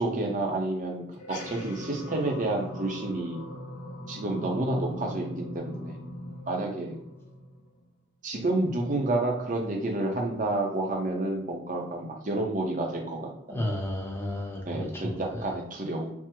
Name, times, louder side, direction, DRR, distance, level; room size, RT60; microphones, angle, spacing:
voice 1, 0.0-3.4 4.1-6.0 6.5-7.0 8.2-13.6 14.7-16.1, right 2 dB, 40° right, 0 dB, 0.7 m, -30 dB
sound 1, 1.1-7.9, equal, 65° left, 0.6 m, -40 dB
voice 2, 13.5-15.5, left 1 dB, 10° left, -1 dB, 0.6 m, -33 dB
3.4 x 2.0 x 2.9 m, 0.83 s
head